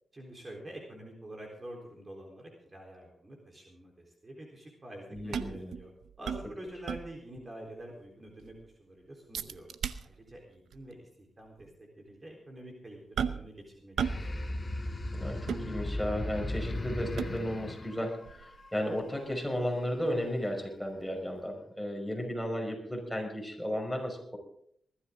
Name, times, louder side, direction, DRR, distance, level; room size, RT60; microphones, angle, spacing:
voice 1, 0.1-5.9 6.2-9.7 10.0-11.7 12.0-14.5, right 1 dB, 30° right, 0 dB, 3.9 m, -47 dB
voice 2, 5.1-5.7 15.1-24.4, equal, 5° left, 1 dB, 5.7 m, -34 dB
sound 1, 5.1-7.4 7.8-7.9 8.3-8.7 9.3-10.4 10.7-10.9 11.6-11.7 13.2-13.6 14.0-14.3 14.6-16.2 16.7-17.6 18.2-21.0 21.4-21.5, right 7 dB, 80° right, 0.7 m, -37 dB
sound 2, 14.0-18.9, left 1 dB, 30° left, 1.9 m, -36 dB
20.5 x 13.0 x 3.8 m, 0.66 s
cardioid pair, 70°, 0 cm